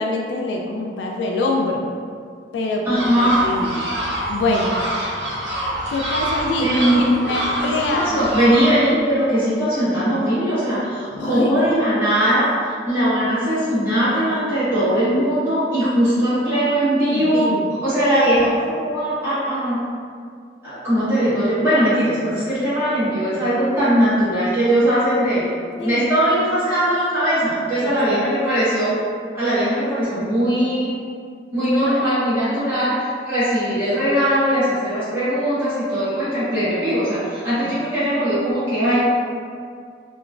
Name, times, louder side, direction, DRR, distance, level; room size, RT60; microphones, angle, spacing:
voice 1, 0.0-1.8 2.5-3.8 4.3-4.8 5.9-6.7 6.9-8.3 11.1-11.6 17.1-17.7 25.8-26.1 27.7-28.2 31.6-32.0 37.6-37.7, left 2 dB, 75° left, 0 dB, 0.3 m, -25 dB
voice 2, 2.8-3.4 5.0-5.1 6.6-12.5 12.9-17.5 17.8-19.9 20.6-25.5 25.8-29.0 29.3-31.0 31.5-39.0, equal, 15° right, -14 dB, 1.2 m, -20 dB
sound 1, 2.9-8.7, right 1 dB, 80° right, 0.9 m, -26 dB
2.9 x 2.2 x 2.4 m, 2.1 s
head